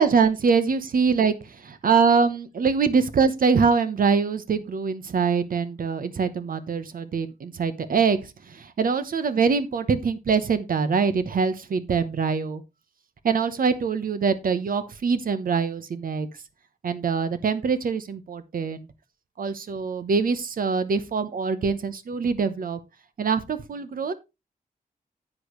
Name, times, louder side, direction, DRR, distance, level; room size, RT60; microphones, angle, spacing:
voice 1, 0.0-12.6 13.2-16.3 16.8-18.9 19.4-22.8 23.2-24.1, right 5 dB, 65° right, 11 dB, 1.0 m, -24 dB
10.0 x 8.5 x 3.1 m, 0.25 s
wide cardioid pair, 130°, 16 cm